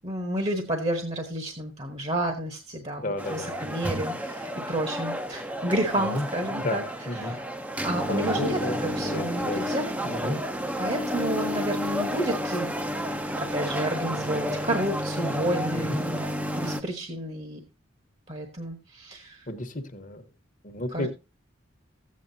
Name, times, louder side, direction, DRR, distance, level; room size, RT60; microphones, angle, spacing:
voice 1, 0.0-6.8 7.1-7.4 7.8-9.9 10.2-10.4 10.8-12.7 13.4-16.2 16.5-17.6 18.3-19.5 20.9-21.1, right 1 dB, 30° right, 5 dB, 1.1 m, -30 dB
voice 2, 3.0-3.6 6.0-6.2 6.6-6.8 7.1-7.4 8.1-9.6 10.0-10.4 15.7-16.0 19.5-20.2 20.6-21.1, left 1 dB, 40° left, 7 dB, 1.1 m, -32 dB
sound 1, 3.2-16.8, equal, 10° right, 0.6 m, -31 dB
14.0 x 8.6 x 2.7 m, 0.26 s
head